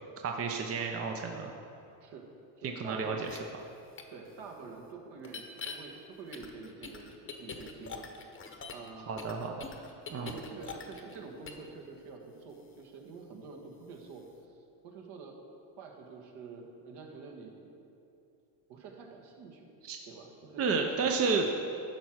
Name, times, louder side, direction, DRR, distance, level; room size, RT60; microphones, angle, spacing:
voice 1, 0.2-1.5 2.6-3.3 9.1-9.5 10.1-10.3 19.8-20.0 20.6-21.5, right 4 dB, 30° right, 3 dB, 0.7 m, -31 dB
voice 2, 2.6-3.2 4.1-8.1 8.7-9.4 10.1-14.2 14.8-15.4 15.8-17.6 18.7-19.7 20.1-21.1, right 4 dB, 60° right, 2 dB, 1.6 m, -47 dB
sound 1, 3.2-3.4 4.0-4.1 5.2-5.8 6.3-8.9 9.2-11.2 11.5-11.7, left 5 dB, 25° left, 1.0 m, -43 dB
11.5 x 4.6 x 6.3 m, 2.7 s
supercardioid pair, 100°, 45 cm